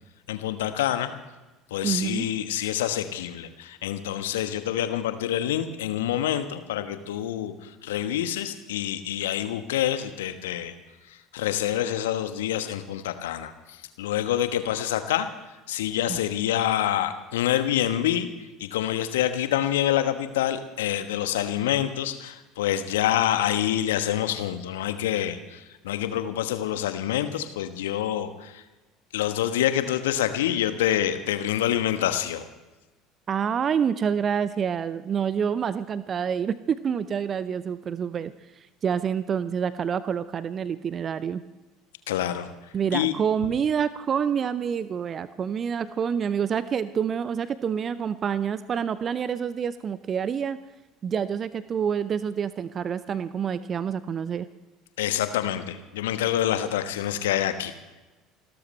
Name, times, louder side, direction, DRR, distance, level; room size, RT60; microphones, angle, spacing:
voice 1, 0.3-1.1 1.7-10.7 11.1-15.3 15.7-18.3 18.6-28.6 29.1-32.5 42.1-43.1 55.0-58.0, left 11 dB, 70° left, 9 dB, 1.2 m, -27 dB
voice 2, 1.8-2.3 16.1-16.2 33.3-41.4 42.7-50.6 51.0-54.5, right 7 dB, 35° right, 15 dB, 0.6 m, -27 dB
29.5 x 13.5 x 3.3 m, 1.1 s
figure-of-eight pair, 65°, 0 cm